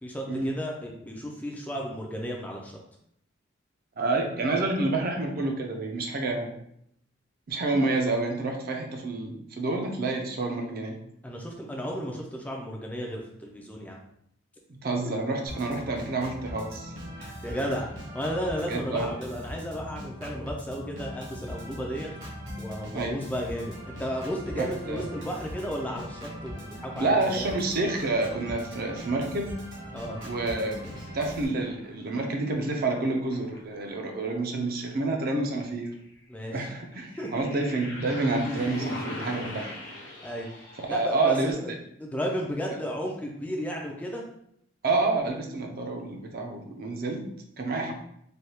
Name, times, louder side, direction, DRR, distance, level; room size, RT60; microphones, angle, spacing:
voice 1, 0.0-2.8 11.2-14.0 17.2-17.9 18.1-22.1 22.6-27.5 29.9-30.2 30.8-31.0 36.3-36.6 37.2-37.5 40.2-40.5 40.9-41.5 42.0-44.3 47.8-47.9, equal, 10° left, -1 dB, 0.3 m, -34 dB
voice 2, 4.0-6.5 7.5-11.0 14.7-16.9 18.7-19.1 22.9-23.2 24.6-25.1 27.0-29.5 30.2-30.8 31.1-35.9 36.5-39.7 40.9-41.5 44.8-47.2 47.6-47.9, right 2 dB, 50° right, 2 dB, 0.5 m, -28 dB
Organ, 15.5-31.5, equal, 70° right, 0.9 m, -40 dB
sound 1, 30.9-32.7 33.1-33.9 37.0-41.5, left 1 dB, 70° left, 0.9 m, -38 dB
3.3 x 2.2 x 2.8 m, 0.72 s
head